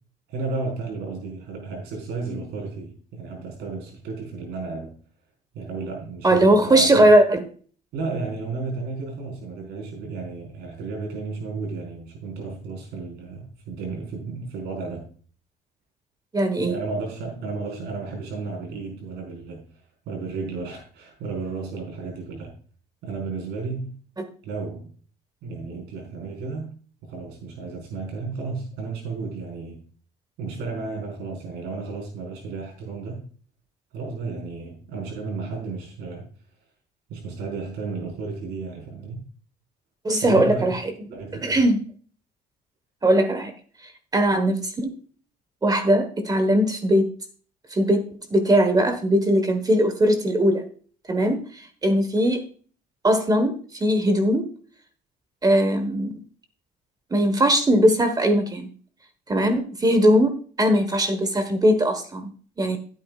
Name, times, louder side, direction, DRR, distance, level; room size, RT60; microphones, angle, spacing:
voice 1, 0.3-4.9 5.5-7.1 7.9-15.0 16.6-22.5 23.0-23.9 24.4-24.9 25.4-26.7 27.0-29.8 30.4-33.3 33.9-36.3 37.1-39.2 40.2-40.7 41.1-41.6, right 4 dB, 85° right, 4.9 m, -33 dB
voice 2, 6.2-7.4 16.3-16.8 40.0-40.8 41.4-41.8 43.0-43.5 44.1-44.9 45.6-47.1 47.7-48.0 48.3-50.6 51.1-52.5 53.0-54.5 55.4-56.1 57.1-58.7 59.3-62.3 62.6-62.8, right 1 dB, 20° right, 1.4 m, -20 dB
14.5 x 9.0 x 2.5 m
cardioid pair, 110°, 17 cm